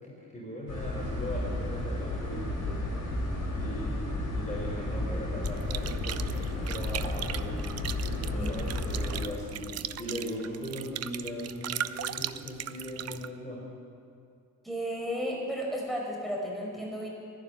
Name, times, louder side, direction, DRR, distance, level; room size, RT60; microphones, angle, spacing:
voice 1, 0.0-2.8 3.5-7.6 8.0-13.6, equal, 15° left, -4 dB, 4.3 m, -39 dB
sound 1, 0.7-9.2, left 2 dB, 75° left, 3.3 m, -32 dB
sound 2, 5.4-13.3, right 11 dB, 40° right, 0.6 m, -38 dB
voice 2, 8.3-8.7 9.0-9.2 14.6-17.1, equal, ahead, -2 dB, 5.0 m, -34 dB
11.5 x 11.5 x 9.3 m, 2.4 s
figure-of-eight pair, 45°, 41 cm